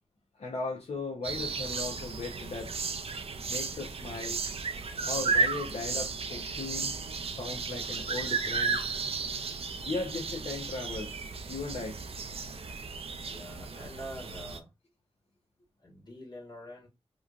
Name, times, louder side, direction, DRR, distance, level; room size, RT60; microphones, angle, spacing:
voice 1, 0.4-2.8 3.5-4.4 5.0-7.0 7.4-8.8 9.8-12.0, left 3 dB, 70° left, 0.6 m, -37 dB
sound 1, 1.2-14.6, right 4 dB, 60° right, 0.4 m, -34 dB
voice 2, 13.3-14.7 15.8-16.9, equal, 40° left, 1.4 m, -45 dB
3.0 x 2.5 x 2.3 m
wide cardioid pair, 85°, 11 cm